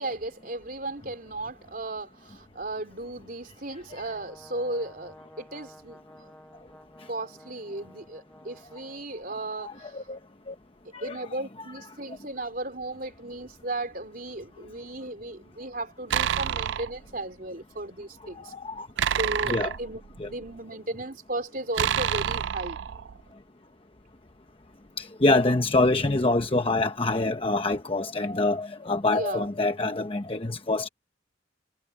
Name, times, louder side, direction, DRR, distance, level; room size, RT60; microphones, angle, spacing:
voice 1, 0.0-6.3 7.1-10.1 11.0-18.5 19.2-22.8 29.1-29.6, right 2 dB, 50° right, 4.1 m, -35 dB
Brass instrument, 3.9-9.1, left 1 dB, 5° left, 6.9 m, -52 dB
voice 2, 9.6-10.2 10.5-10.6 10.9-11.2 18.5-18.9 19.5-19.7 20.2-20.3 25.0-30.9, left 2 dB, 30° left, 0.9 m, -25 dB
sound 1, 16.1-17.0 19.0-20.5 21.8-23.2, right 9 dB, 85° right, 0.4 m, -28 dB
head